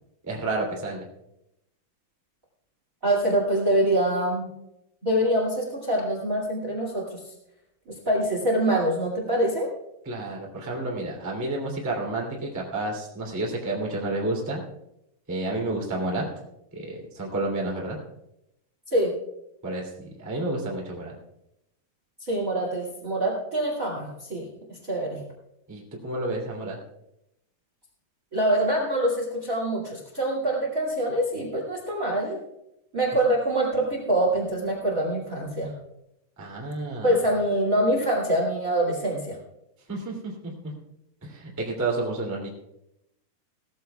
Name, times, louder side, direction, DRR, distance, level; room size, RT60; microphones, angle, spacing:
voice 1, 0.2-1.0 10.0-14.6 15.3-16.2 16.7-18.0 19.6-21.1 25.7-26.8 36.4-37.2 39.9-40.7 41.2-42.5, right 2 dB, 5° right, -2 dB, 2.0 m, -30 dB
voice 2, 3.0-4.5 5.0-7.2 8.1-9.7 18.9-19.1 22.2-25.2 28.3-32.4 32.9-35.7 37.0-39.4, right 1 dB, 25° right, -1 dB, 2.2 m, -25 dB
18.5 x 14.0 x 2.3 m, 0.83 s
omnidirectional pair, 4.5 m